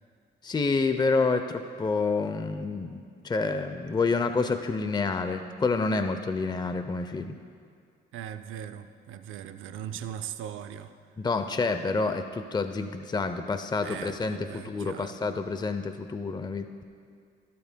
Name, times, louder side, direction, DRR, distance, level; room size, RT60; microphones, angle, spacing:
voice 1, 0.4-7.4 11.2-16.7, left 4 dB, 20° left, 9 dB, 0.6 m, -28 dB
voice 2, 8.1-10.9 13.8-15.2, right 10 dB, 85° right, 10 dB, 0.6 m, -39 dB
21.0 x 12.0 x 2.2 m, 2.2 s
cardioid pair, 90°, 20 cm